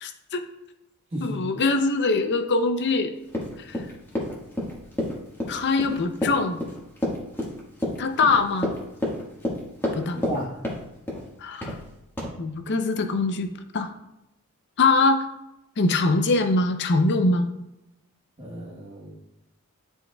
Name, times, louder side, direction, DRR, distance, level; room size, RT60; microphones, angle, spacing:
voice 1, 0.0-0.4 1.2-3.1 3.7-3.8 5.5-6.6 8.0-8.7 9.9-10.2 11.4-11.8 12.4-13.9 14.8-15.2 15.8-17.5, left 3 dB, 50° left, 7 dB, 0.6 m, -23 dB
voice 2, 1.1-1.4 10.1-10.6 18.4-19.2, equal, 30° right, -8 dB, 1.2 m, -33 dB
Run, 3.3-10.4 10.6-11.3 11.6-11.8 12.2-12.3, left 1 dB, 10° left, 1.5 m, -29 dB
11.0 x 4.5 x 2.3 m, 0.90 s
head